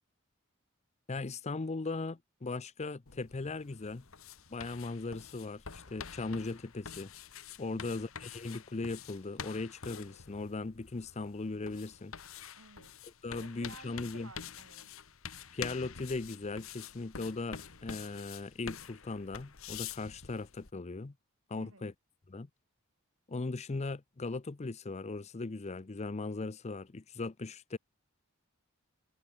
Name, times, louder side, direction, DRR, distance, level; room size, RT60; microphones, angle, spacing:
voice 1, 1.1-4.1 4.5-7.1 7.6-12.1 13.2-14.3 15.5-21.1 21.5-21.9 22.3-22.5 23.3-27.8, left 3 dB, 30° left, 0.6 m, -38 dB
sound 1, 3.1-20.7, left 7 dB, 75° left, 1.5 m, -47 dB
voice 2, 12.5-12.9 13.3-14.9 21.5-21.9, right 3 dB, 85° right, 4.8 m, -55 dB
head